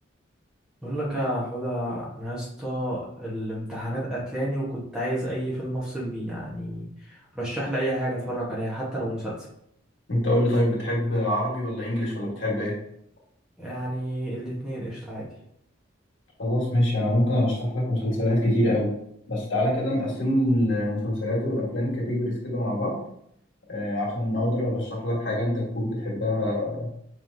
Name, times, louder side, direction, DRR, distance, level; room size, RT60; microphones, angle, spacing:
voice 1, 0.8-9.3 13.6-15.3, right 1 dB, 5° right, -6 dB, 1.1 m, -30 dB
voice 2, 10.1-12.7 16.4-18.9 19.3-23.0 23.7-26.9, left 1 dB, 65° left, -4 dB, 1.6 m, -25 dB
5.4 x 3.2 x 2.7 m, 0.71 s
head